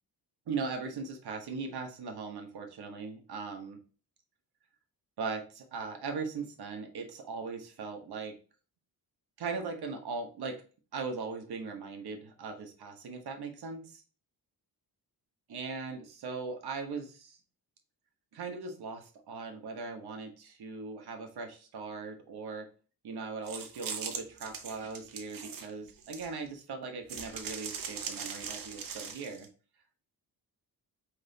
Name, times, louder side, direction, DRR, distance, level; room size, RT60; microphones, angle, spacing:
voice 1, 0.5-3.8 5.2-8.4 9.4-10.6 10.9-14.0 15.5-17.4 18.3-22.7 23.0-29.5, right 4 dB, 75° right, 4 dB, 1.2 m, -39 dB
sound 1, 23.5-26.5 27.1-29.5, right 6 dB, 55° right, 0.8 m, -40 dB
5.2 x 3.5 x 2.8 m, 0.36 s
cardioid pair, 125°, 39 cm